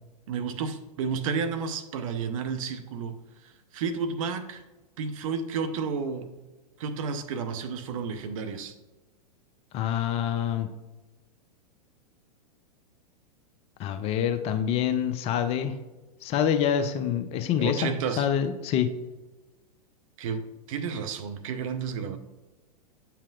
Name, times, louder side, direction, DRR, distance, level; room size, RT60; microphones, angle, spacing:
voice 1, 0.3-4.6 5.0-6.3 6.8-8.7 17.6-18.3 20.2-22.2, right 5 dB, 55° right, 9 dB, 0.7 m, -32 dB
voice 2, 9.7-10.7 13.8-15.7 16.2-18.9, left 9 dB, 30° left, 9 dB, 0.5 m, -26 dB
8.4 x 5.7 x 2.4 m, 1.2 s
figure-of-eight pair, 100°, 21 cm